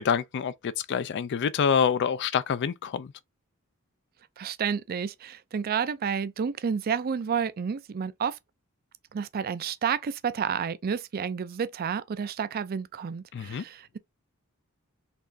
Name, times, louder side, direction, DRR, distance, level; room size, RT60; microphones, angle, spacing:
voice 1, 0.0-3.1 13.3-13.6, left 7 dB, 55° left, 0.4 m, -26 dB
voice 2, 4.4-8.4 9.1-14.0, right 7 dB, 45° right, 0.4 m, -30 dB
4.3 x 3.0 x 2.6 m
head